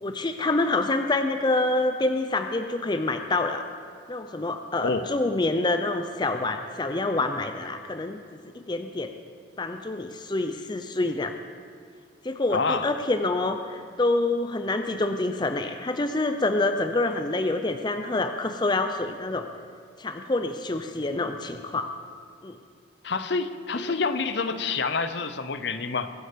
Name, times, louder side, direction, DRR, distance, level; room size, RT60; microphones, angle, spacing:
voice 1, 0.0-3.6 4.1-8.2 8.5-9.1 9.6-11.3 12.2-19.5 20.0-21.9 22.4-22.6 23.8-23.9, left 2 dB, 25° left, 7 dB, 0.5 m, -27 dB
voice 2, 12.5-12.9 23.0-26.1, left 4 dB, 60° left, 11 dB, 0.7 m, -27 dB
21.5 x 8.8 x 5.2 m, 2.3 s
head